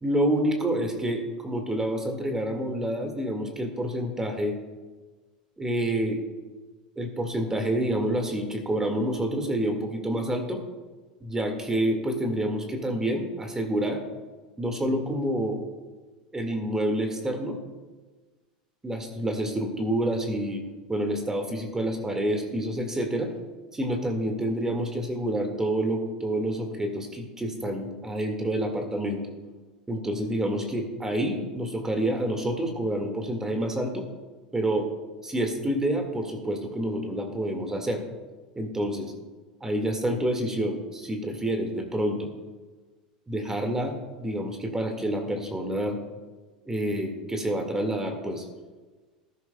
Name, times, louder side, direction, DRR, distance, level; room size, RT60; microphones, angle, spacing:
voice 1, 0.0-4.6 5.6-6.2 7.0-10.6 11.2-14.0 14.6-15.6 16.3-17.6 18.8-20.6 20.9-23.3 23.7-29.2 29.9-34.1 34.5-34.9 35.2-38.0 38.6-39.1 39.6-42.3 43.3-46.0 46.7-48.5, right 1 dB, 10° right, 4 dB, 1.9 m, -28 dB
19.5 x 11.5 x 2.3 m, 1.3 s
figure-of-eight pair, 80°, 4 cm